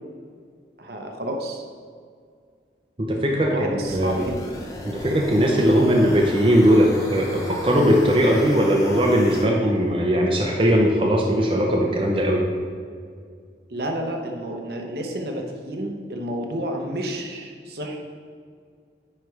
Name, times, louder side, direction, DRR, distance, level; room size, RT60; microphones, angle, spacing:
voice 1, 0.8-1.6 3.4-4.4 13.7-18.0, right 1 dB, 65° right, 2 dB, 0.8 m, -30 dB
voice 2, 3.0-4.2 4.8-12.4, equal, 30° right, -1 dB, 0.6 m, -19 dB
sound 1, 3.8-9.5, left 1 dB, 20° left, 0.8 m, -36 dB
9.4 x 3.3 x 4.7 m, 2.1 s
head